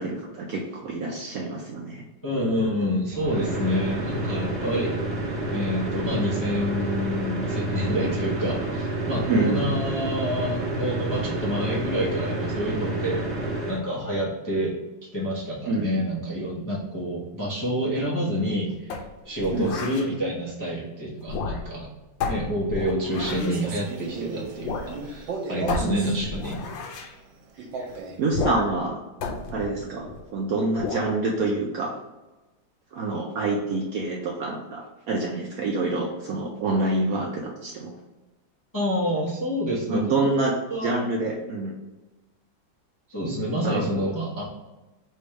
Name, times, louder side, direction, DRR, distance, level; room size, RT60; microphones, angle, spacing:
voice 1, 0.0-2.0 9.3-9.6 15.7-16.0 19.5-19.7 25.8-26.2 28.2-29.0 29.5-31.9 32.9-37.9 39.9-40.5 40.8-41.7 43.6-44.0, right 2 dB, 70° right, -1 dB, 0.9 m, -27 dB
voice 2, 2.2-5.0 5.5-13.2 13.7-14.7 15.1-19.0 19.2-21.9 22.3-26.6 27.7-27.9 38.7-40.1 40.7-41.0 43.1-44.4, equal, 20° left, -6 dB, 0.5 m, -28 dB
sound 1, 3.1-13.8, right 2 dB, 40° right, 1.1 m, -29 dB
sound 2, 18.9-20.1 21.2-21.8 22.2-23.6 24.6-24.9 25.2-25.3 25.7-27.1 28.3-28.9 29.2-30.3 30.8-31.1, left 4 dB, 85° left, 1.4 m, -31 dB
Male speech man speaking, 23.1-26.2 27.6-28.2, right 3 dB, 85° right, 1.4 m, -34 dB
3.4 x 3.2 x 4.6 m, 1.1 s
omnidirectional pair, 2.0 m